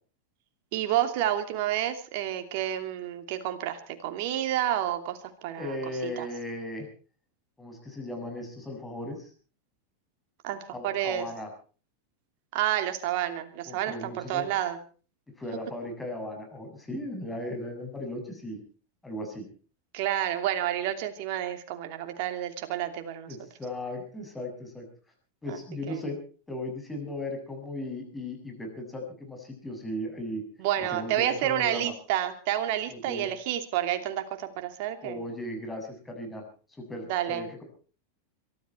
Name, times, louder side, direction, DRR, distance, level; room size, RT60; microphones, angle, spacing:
voice 1, 0.7-5.8 6.0-6.3 10.4-11.3 12.5-14.8 19.9-23.4 25.5-25.6 25.9-26.0 30.6-35.2 37.1-37.5, right 12 dB, 60° right, 7 dB, 2.8 m, -29 dB
voice 2, 5.6-6.9 7.6-9.3 10.7-11.5 13.7-14.5 15.4-18.6 19.0-19.5 23.3-24.9 25.4-26.2 26.5-30.4 30.9-31.9 32.9-33.3 35.0-36.4 36.8-37.6, left 1 dB, 10° left, 3 dB, 7.4 m, -37 dB
23.0 x 13.5 x 4.6 m, 0.40 s
hypercardioid pair, 115°, 0 cm